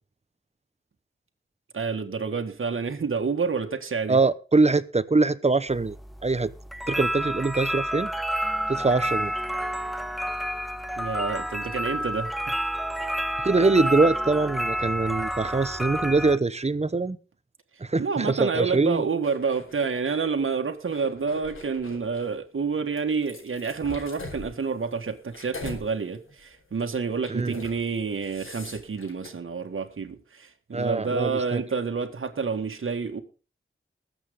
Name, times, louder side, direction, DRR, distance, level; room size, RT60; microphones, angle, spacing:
voice 1, 1.7-4.2 11.0-12.3 18.0-33.2, right 5 dB, 75° right, 1.8 m, -28 dB
voice 2, 4.1-6.0 6.2-6.5 6.9-8.1 8.7-9.3 13.4-17.2 17.8-19.0 27.3-27.5 30.7-31.6, right 3 dB, 30° right, 1.0 m, -23 dB
sound 1, 5.7-16.4, equal, ahead, 1.0 m, -29 dB
sound 2, 19.2-20.2 20.8-22.3 23.0-25.9 26.3-26.5 27.2-27.8 28.1-29.3, left 3 dB, 75° left, 4.7 m, -42 dB
20.5 x 8.0 x 3.7 m
wide cardioid pair, 75°, 21 cm